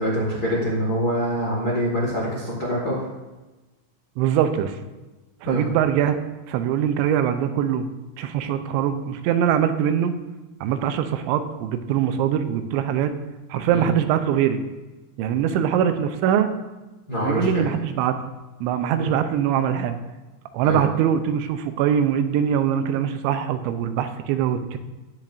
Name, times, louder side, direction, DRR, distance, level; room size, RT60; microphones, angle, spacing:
voice 1, 0.0-3.1 5.4-5.7 13.7-13.9 17.1-17.7 20.6-20.8, equal, 60° left, -5 dB, 0.9 m, -25 dB
voice 2, 4.2-4.8 5.4-6.2 6.5-7.9 8.2-10.2 10.6-13.1 13.5-14.6 15.2-16.5 17.2-18.2 18.6-20.0 20.5-24.8, right 9 dB, 90° right, 9 dB, 3.0 m, -22 dB
18.0 x 7.4 x 2.6 m, 1.1 s
omnidirectional pair, 5.2 m